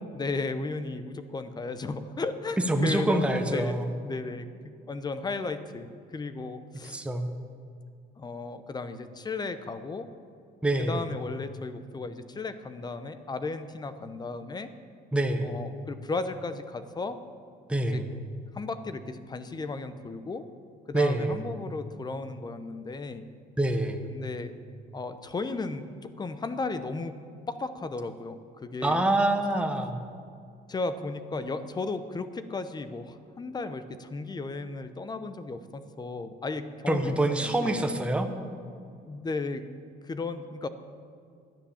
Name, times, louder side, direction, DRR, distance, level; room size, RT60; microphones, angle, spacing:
voice 1, 0.1-3.8 4.0-7.0 8.2-10.1 10.8-14.7 15.4-17.2 17.9-18.0 18.5-20.5 20.9-23.3 24.1-24.5 24.9-27.2 27.5-29.0 30.7-37.9 39.0-39.6 40.0-40.7, left 3 dB, 25° left, 11 dB, 0.8 m, -35 dB
voice 2, 2.7-3.9 6.8-7.4 10.6-11.1 15.1-15.6 17.7-18.2 20.9-21.3 23.6-24.2 28.8-30.0 36.9-38.3, right 1 dB, 5° right, 5 dB, 1.0 m, -26 dB
12.0 x 9.7 x 7.1 m, 2.4 s
cardioid pair, 110°, 17 cm